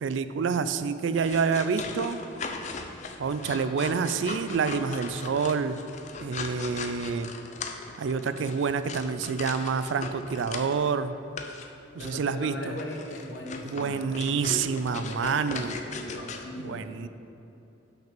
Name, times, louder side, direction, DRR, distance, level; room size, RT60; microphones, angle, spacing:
voice 1, 0.0-2.2 3.2-5.8 6.2-7.3 8.0-11.1 11.9-12.8 13.6-15.7 16.6-17.1, right 5 dB, 80° right, 12 dB, 0.4 m, -28 dB
sound 1, 1.1-10.9 11.4-11.7 12.0-12.2 12.8-16.4, left 4 dB, 40° left, 0.5 m, -39 dB
voice 2, 12.0-14.4 14.7-16.9, left 1 dB, 65° left, 0 dB, 1.2 m, -40 dB
6.1 x 5.8 x 6.8 m, 2.9 s
head